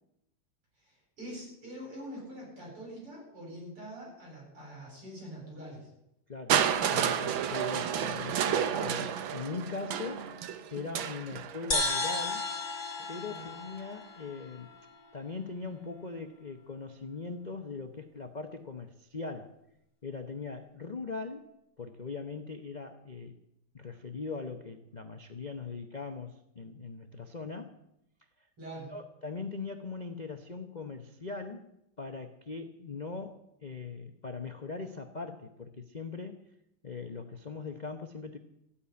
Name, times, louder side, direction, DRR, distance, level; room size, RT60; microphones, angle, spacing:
voice 1, 0.8-5.9 13.2-13.4 28.6-28.9, equal, 90° right, -3 dB, 9.1 m, -44 dB
voice 2, 6.3-10.3 10.7-12.4 13.1-14.7 15.1-19.6 20.0-21.5 21.8-23.3 23.7-27.8 28.9-31.6 32.0-36.4 36.8-38.4, left 4 dB, 65° left, 7 dB, 0.4 m, -40 dB
Crushing, 6.5-12.4 13.4-13.5, right 9 dB, 70° right, 1.6 m, -31 dB
sound 1, 11.7-15.2, left 2 dB, 45° left, 3.1 m, -34 dB
14.5 x 8.7 x 9.6 m, 0.82 s
omnidirectional pair, 2.4 m